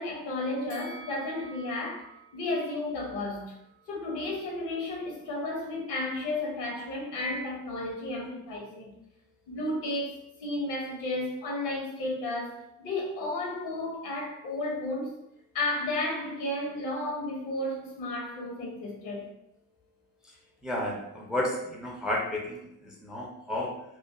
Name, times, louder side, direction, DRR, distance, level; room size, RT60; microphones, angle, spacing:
voice 1, 0.0-3.6 3.9-8.9 9.5-15.1 15.5-19.3, left 2 dB, 65° left, -1 dB, 0.8 m, -33 dB
Bell, 0.7-3.9 4.2-4.4, right 3 dB, 90° right, 0.5 m, -51 dB
voice 2, 20.6-23.8, left 1 dB, ahead, -1 dB, 0.5 m, -32 dB
2.4 x 2.4 x 2.3 m, 0.80 s
figure-of-eight pair, 40°, 44 cm